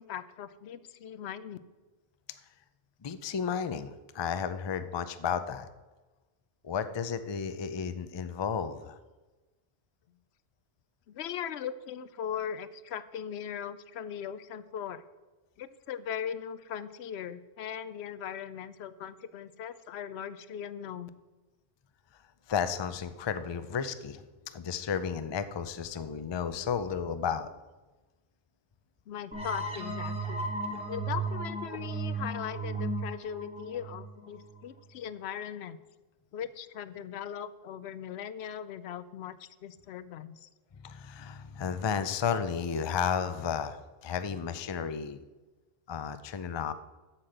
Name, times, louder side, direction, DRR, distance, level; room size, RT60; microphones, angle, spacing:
voice 1, 0.0-1.6 11.1-15.0 15.6-21.1 29.1-30.5 30.9-35.8 36.3-40.5, left 9 dB, 80° left, 15 dB, 0.8 m, -39 dB
voice 2, 3.0-5.7 6.6-9.0 22.5-27.5 40.8-45.2 45.9-46.7, left 7 dB, 40° left, 11 dB, 0.4 m, -33 dB
sound 1, 29.3-34.8, right 3 dB, 5° right, 1.1 m, -35 dB
8.3 x 7.6 x 6.5 m, 1.2 s
omnidirectional pair, 1.1 m